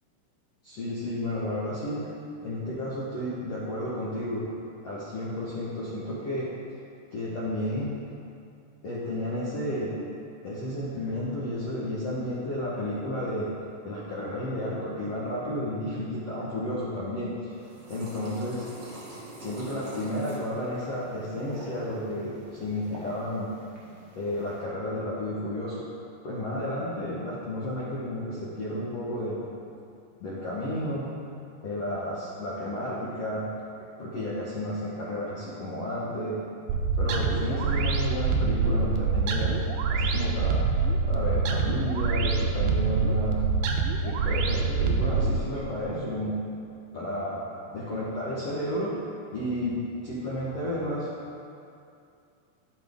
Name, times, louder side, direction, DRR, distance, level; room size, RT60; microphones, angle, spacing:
voice 1, 0.6-2.0 2.4-4.5 4.8-6.5 7.1-7.9 8.8-9.9 10.4-13.5 13.8-17.5 17.9-18.7 19.4-23.7 24.1-25.8 26.2-29.4 30.2-31.1 31.6-33.4 34.0-36.4 37.0-39.6 39.9-40.6 41.1-43.4 44.0-46.4 46.9-47.4 47.7-48.9 49.3-51.1, left 1 dB, 75° left, -8 dB, 1.4 m, -32 dB
sound 1, 17.5-24.6, right 1 dB, 60° right, 1.1 m, -45 dB
sound 2, 36.7-45.4, right 4 dB, 90° right, 2.0 m, -25 dB
14.5 x 6.0 x 3.6 m, 2.5 s
omnidirectional pair, 4.8 m